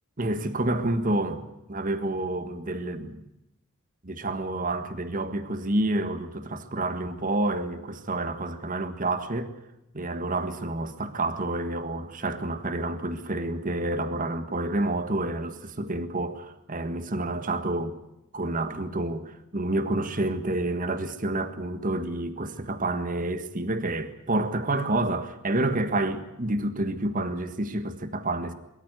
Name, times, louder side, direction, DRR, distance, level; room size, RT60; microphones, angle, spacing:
voice 1, 0.2-3.3 4.0-9.5 9.9-17.9 18.3-28.5, right 2 dB, 40° right, 1.6 m, -29 dB
22.5 x 14.0 x 9.7 m
head